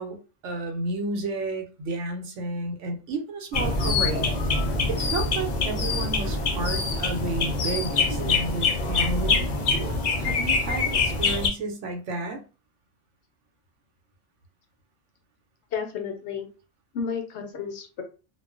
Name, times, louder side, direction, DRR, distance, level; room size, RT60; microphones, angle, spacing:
voice 1, 0.0-4.3 4.9-9.5 10.2-12.4, right 2 dB, 85° right, 3 dB, 1.0 m, -32 dB
sound 1, 3.5-11.5, left 3 dB, 55° left, 0.5 m, -25 dB
voice 2, 15.7-16.5 16.9-18.0, left 6 dB, 70° left, 4 dB, 0.9 m, -32 dB
2.3 x 2.2 x 2.4 m, 0.33 s
omnidirectional pair, 1.2 m